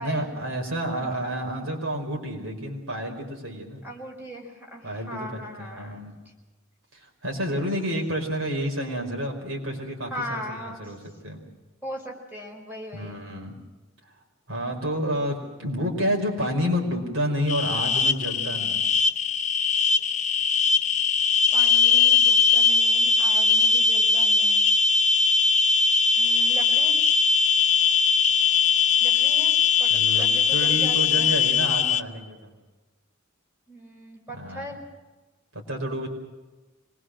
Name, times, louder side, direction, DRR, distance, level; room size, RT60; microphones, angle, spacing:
voice 1, 0.0-3.8 4.8-6.2 6.9-11.0 11.2-11.4 12.9-13.6 14.5-18.9 29.9-30.3 30.5-32.5 34.3-34.7 35.5-36.1, equal, 85° right, 2 dB, 4.8 m, -29 dB
voice 2, 3.8-6.0 10.1-10.8 11.8-13.2 21.5-24.7 26.1-27.0 29.0-31.4 33.7-34.8, equal, 10° right, -1 dB, 5.3 m, -39 dB
sound 1, 17.5-32.0, left 5 dB, 35° left, 0.7 m, -20 dB
25.5 x 21.0 x 6.5 m, 1.2 s
head